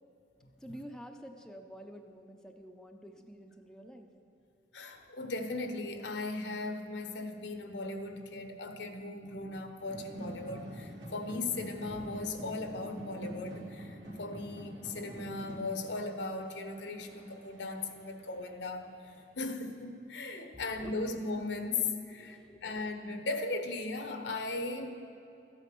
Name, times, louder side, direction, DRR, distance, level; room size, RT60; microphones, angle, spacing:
voice 1, 0.6-4.1 20.8-20.9 22.2-22.7, equal, 5° left, 3 dB, 0.6 m, -49 dB
voice 2, 4.7-24.9, left 3 dB, 75° left, 6 dB, 1.1 m, -38 dB
sound 1, 9.8-18.7, equal, 85° right, 2.9 m, -46 dB
14.0 x 9.0 x 6.1 m, 2.9 s
head